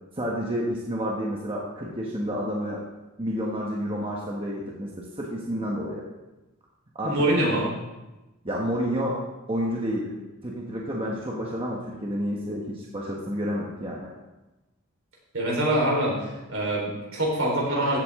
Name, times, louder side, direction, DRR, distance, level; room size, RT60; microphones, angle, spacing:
voice 1, 0.2-2.8 3.2-6.0 6.9-7.2 8.4-9.2 9.5-14.1, equal, 25° right, -3 dB, 1.3 m, -30 dB
voice 2, 7.0-7.7 15.3-16.2 16.5-18.0, right 1 dB, 60° right, -3 dB, 4.2 m, -24 dB
15.0 x 8.5 x 3.7 m, 1.1 s
head